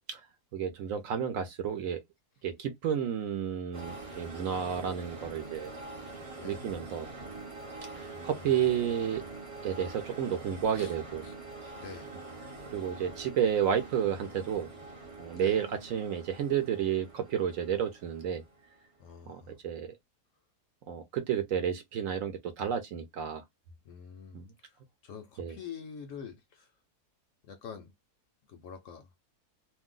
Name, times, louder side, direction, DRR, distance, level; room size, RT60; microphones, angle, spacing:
voice 1, 0.5-2.0 2.4-5.7 6.4-7.1 8.0-9.2 9.6-11.2 12.7-14.7 15.2-18.4 19.3-19.9 20.9-23.4 24.3-24.5 25.4-25.5, right 8 dB, 70° right, 0.8 m, -31 dB
voice 2, 3.7-4.2 6.4-6.7 8.1-8.7 10.7-10.9 11.2-11.3 11.7-12.1 15.4-15.7 19.0-19.6 23.8-26.7 27.4-27.9 28.5-29.1, left 6 dB, 70° left, 0.8 m, -47 dB
sound 1, 3.7-18.9, right 2 dB, 35° right, 0.6 m, -45 dB
2.6 x 2.1 x 3.6 m
omnidirectional pair, 1.7 m